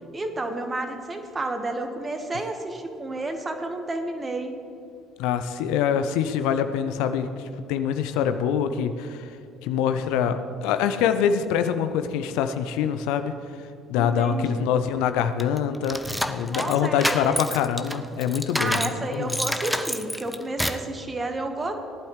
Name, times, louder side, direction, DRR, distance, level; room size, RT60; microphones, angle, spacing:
voice 1, 0.1-4.5 13.9-14.6 16.5-17.4 18.6-21.7, right 2 dB, 25° right, 6 dB, 1.5 m, -31 dB
voice 2, 5.2-7.3 7.7-9.3 9.6-13.3 13.9-16.0 16.3-19.3, left 8 dB, 65° left, 9 dB, 0.5 m, -24 dB
sound 1, 15.4-19.0 19.3-20.9, equal, ahead, 0.6 m, -28 dB
18.0 x 11.5 x 3.3 m, 2.6 s
figure-of-eight pair, 55°, 0 cm